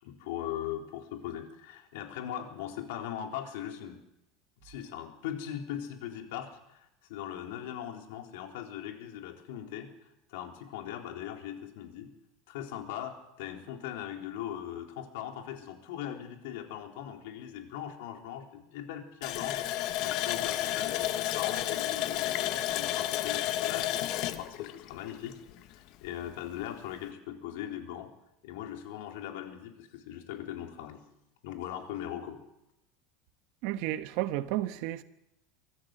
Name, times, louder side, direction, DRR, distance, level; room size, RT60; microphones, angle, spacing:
voice 1, 0.0-4.0 4.6-12.1 12.5-19.6 20.0-25.3 25.7-28.1 28.4-31.0 31.4-32.4, left 10 dB, 75° left, 3.8 m, -40 dB
Water tap faucet, 19.2-25.7 26.0-26.1 26.6-26.8, left 13 dB, 50° left, 1.3 m, -31 dB
voice 2, 33.6-35.0, right 15 dB, 60° right, 1.3 m, -32 dB
25.0 x 14.0 x 7.9 m
supercardioid pair, 155°, 0 cm